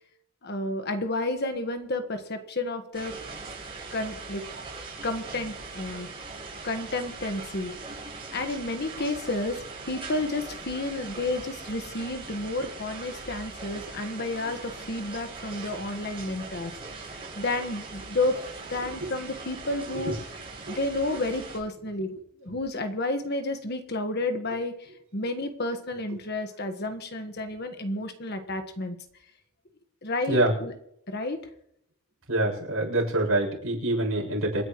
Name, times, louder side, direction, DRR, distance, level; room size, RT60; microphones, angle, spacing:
voice 1, 0.4-3.1 3.9-4.4 5.0-6.1 6.6-7.7 8.3-9.6 9.9-17.0 17.4-18.4 18.7-20.1 20.7-22.2 22.4-29.0 30.0-30.7 31.1-31.4, left 2 dB, 50° left, 7 dB, 1.5 m, -31 dB
sound 1, 2.9-21.6, right 3 dB, 25° right, 6.9 m, -41 dB
voice 2, 32.3-34.6, right 1 dB, 75° right, -2 dB, 7.1 m, -25 dB
27.5 x 10.0 x 3.1 m, 0.74 s
head